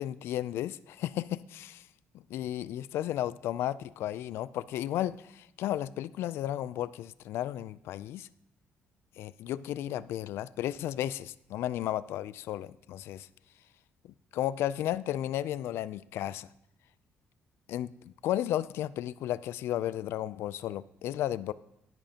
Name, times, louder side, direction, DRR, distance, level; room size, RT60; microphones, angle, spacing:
voice 1, 0.0-1.9 2.3-8.3 9.2-13.3 14.0-16.5 17.7-21.5, left 12 dB, 80° left, 17 dB, 0.3 m, -34 dB
12.0 x 10.5 x 2.9 m, 0.84 s
cardioid pair, 130°, 4 cm